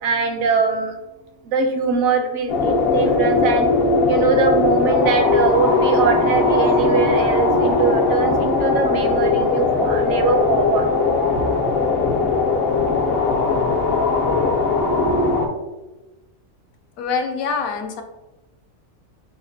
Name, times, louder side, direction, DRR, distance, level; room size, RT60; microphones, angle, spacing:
voice 1, 0.0-0.9 1.4-3.7 4.1-10.9 11.4-11.5, right 4 dB, 80° right, 4 dB, 1.0 m, -21 dB
sound 1, 2.5-15.5, left 3 dB, 60° left, 0.7 m, -19 dB
voice 2, 17.0-18.0, left 5 dB, 80° left, 5 dB, 1.0 m, -24 dB
5.9 x 2.1 x 2.6 m, 1.1 s
omnidirectional pair, 1.5 m